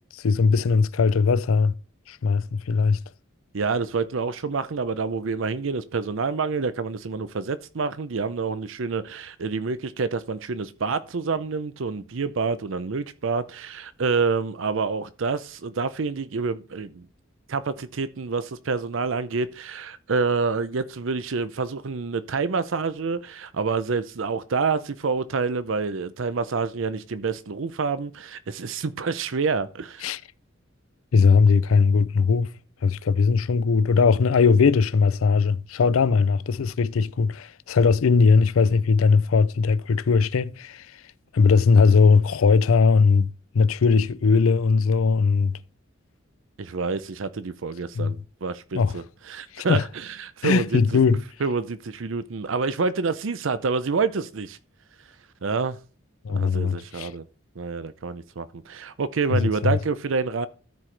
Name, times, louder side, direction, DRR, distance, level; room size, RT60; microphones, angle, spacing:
voice 1, 0.1-1.7 2.1-3.0 30.0-30.2 31.1-32.5 32.8-41.0 41.3-43.3 43.5-45.6 47.9-48.2 48.7-49.0 49.5-49.8 50.4-51.2 56.2-57.1 59.3-59.8, left 5 dB, 90° left, 0.5 m, -19 dB
voice 2, 3.5-17.1 17.5-30.1 46.6-51.0 51.4-54.6 55.4-55.8 56.3-57.2 57.6-60.5, right 4 dB, 70° right, 0.6 m, -27 dB
13.5 x 4.6 x 3.3 m
head